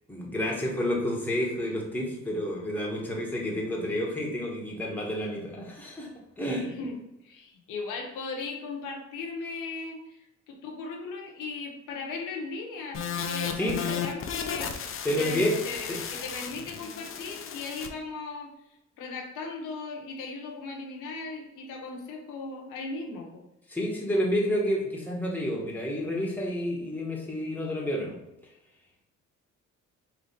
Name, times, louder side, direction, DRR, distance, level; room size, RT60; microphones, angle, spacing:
voice 1, 0.1-6.1 6.4-6.7 13.6-13.8 15.0-15.6 15.9-16.0 23.7-28.2, equal, 5° left, -3 dB, 1.2 m, -29 dB
voice 2, 6.6-7.0 7.2-14.7 15.2-18.5 19.0-23.4, left 4 dB, 90° left, 1 dB, 0.8 m, -37 dB
sound 1, 12.9-17.9, left 7 dB, 45° left, 0.5 m, -34 dB
3.3 x 3.1 x 4.2 m, 0.89 s
cardioid pair, 90°, 30 cm